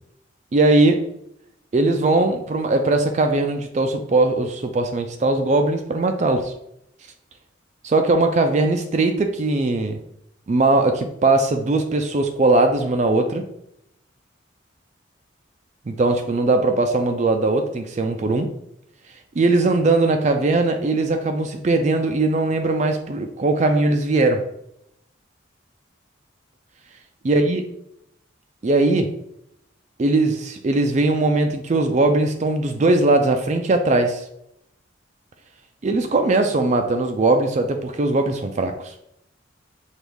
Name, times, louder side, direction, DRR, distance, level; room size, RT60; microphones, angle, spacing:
voice 1, 0.5-1.0 1.7-6.5 7.8-10.0 10.5-13.4 15.9-18.5 19.4-24.4 27.2-27.6 28.6-29.1 30.0-34.2 35.8-38.9, right 2 dB, 35° right, 5 dB, 0.4 m, -20 dB
6.0 x 2.4 x 3.4 m, 0.75 s
head